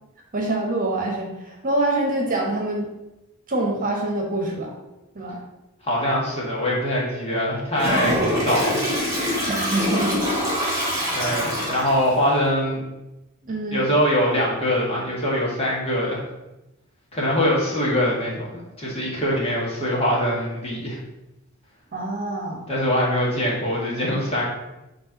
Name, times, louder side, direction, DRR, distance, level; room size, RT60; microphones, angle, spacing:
voice 1, 0.3-2.9 3.5-4.7 5.1-5.4 8.0-8.3 9.5-10.2 13.4-13.9 21.9-22.6, right 2 dB, 40° right, 0 dB, 1.2 m, -25 dB
voice 2, 5.8-8.9 11.1-12.8 13.7-16.2 17.1-21.0 22.7-24.4, equal, 30° left, -4 dB, 1.9 m, -23 dB
Toilet flush, 7.8-12.1, equal, 20° right, 2.3 m, -24 dB
5.5 x 3.5 x 5.8 m, 0.97 s
head